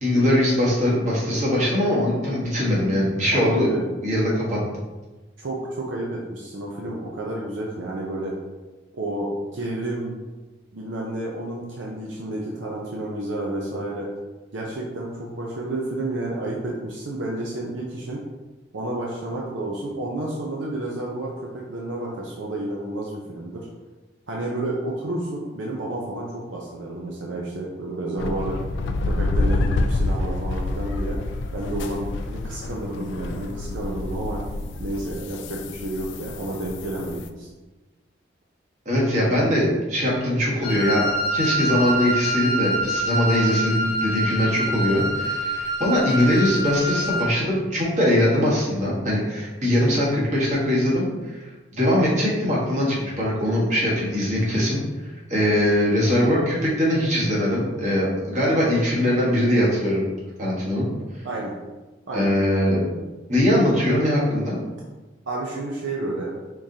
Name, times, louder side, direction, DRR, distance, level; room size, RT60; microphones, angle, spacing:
voice 1, 0.0-3.7 4.0-4.6 38.8-51.4 51.7-54.8 55.3-60.0 60.4-60.9 62.1-62.8 63.3-64.6, left 1 dB, 40° right, -6 dB, 1.3 m, -21 dB
voice 2, 3.3-3.9 5.4-8.4 8.9-10.2 10.7-14.1 14.5-18.2 18.7-23.7 24.3-28.6 29.1-31.2 31.5-34.4 34.8-37.5 61.2-61.5 62.1-62.6 65.3-66.3, right 1 dB, 70° right, -2 dB, 0.6 m, -30 dB
sound 1, 28.2-37.3, left 2 dB, 65° left, 0.3 m, -28 dB
Wind instrument woodwind instrument, 40.6-47.4, equal, 30° left, 0.7 m, -26 dB
4.6 x 3.7 x 2.8 m, 1.2 s
head